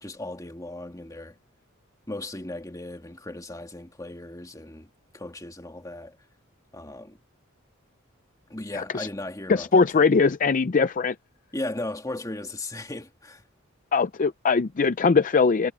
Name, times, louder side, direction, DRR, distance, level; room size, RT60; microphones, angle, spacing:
voice 1, 0.0-1.4 2.1-6.2 6.7-7.2 8.5-10.1 11.5-13.4, left 2 dB, 15° left, 2.0 m, -36 dB
voice 2, 8.7-9.1 9.5-11.2 13.9-15.7, left 4 dB, 40° left, 0.5 m, -21 dB
head